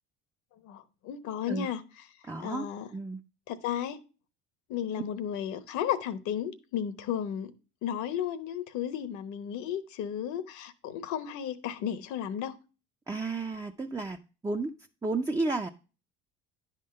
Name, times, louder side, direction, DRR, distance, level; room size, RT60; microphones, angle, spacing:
voice 1, 0.6-1.8 2.4-2.9 3.5-4.0 4.7-7.5 7.8-12.6, left 9 dB, 65° left, 1.0 m, -34 dB
voice 2, 2.3-2.7 2.9-3.2 13.1-14.2 14.4-14.7 15.0-15.7, right 3 dB, 10° right, 0.5 m, -32 dB
10.0 x 3.7 x 6.6 m
supercardioid pair, 85°, 31 cm